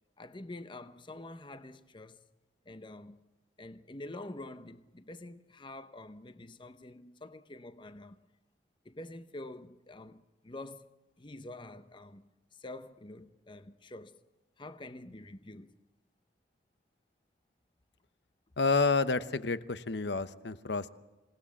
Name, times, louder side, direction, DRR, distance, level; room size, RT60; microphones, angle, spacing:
voice 1, 0.2-2.2 2.6-3.2 3.6-8.2 8.8-10.9 11.2-14.2 14.6-15.8, left 2 dB, 25° left, 0.8 m, -47 dB
voice 2, 18.6-20.9, left 4 dB, 70° left, 1.0 m, -29 dB
27.0 x 18.5 x 7.3 m
head